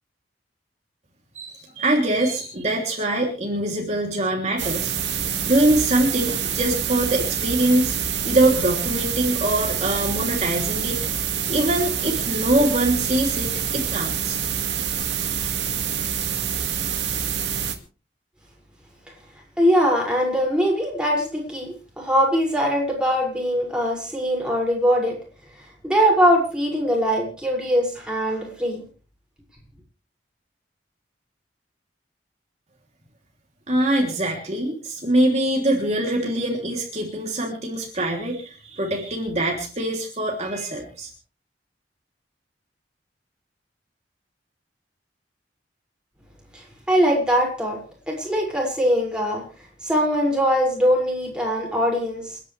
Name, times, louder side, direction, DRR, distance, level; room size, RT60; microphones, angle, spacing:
voice 1, 1.3-4.9 5.4-8.0 8.2-14.4 33.7-41.1, right 1 dB, 40° right, 0 dB, 3.2 m, -23 dB
sound 1, 4.6-17.7, right 8 dB, 85° right, 2.3 m, -26 dB
voice 2, 19.6-25.2 25.8-28.8 46.5-46.6 46.9-47.8 48.1-49.4 49.8-52.4, equal, 5° right, -2 dB, 6.1 m, -21 dB
29.5 x 10.5 x 3.4 m, 0.37 s
head